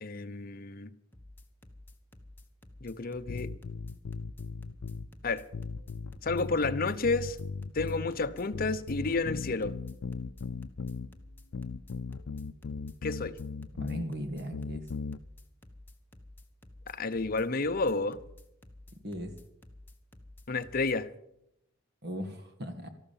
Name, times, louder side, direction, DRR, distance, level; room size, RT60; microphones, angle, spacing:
voice 1, 0.0-0.9 2.8-3.5 5.2-5.4 6.2-7.4 7.7-9.7 13.0-13.4 16.9-18.2 20.5-21.1, left 3 dB, 45° left, 0.8 m, -30 dB
sound 1, 1.1-21.0, left 1 dB, 10° left, 1.2 m, -52 dB
sound 2, 3.3-5.1 5.5-8.1 8.5-11.1 11.5-14.1 14.5-15.2, left 4 dB, 80° left, 0.5 m, -38 dB
voice 2, 13.7-14.9 19.0-19.3 22.0-22.9, equal, 55° right, 1.9 m, -38 dB
13.5 x 12.5 x 7.3 m
head